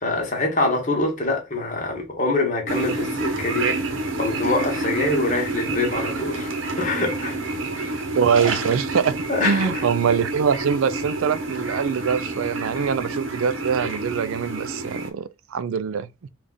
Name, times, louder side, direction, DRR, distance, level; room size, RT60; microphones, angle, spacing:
voice 1, 0.0-3.7 4.2-6.5 6.8-7.4 7.7-8.1 9.3-9.9, left 2 dB, 40° left, 1.0 m, -25 dB
sound 1, 2.7-15.1, right 2 dB, 70° right, 0.8 m, -28 dB
voice 2, 8.1-9.1 9.4-16.1, right 6 dB, 85° right, 0.4 m, -23 dB
3.5 x 2.4 x 3.9 m
head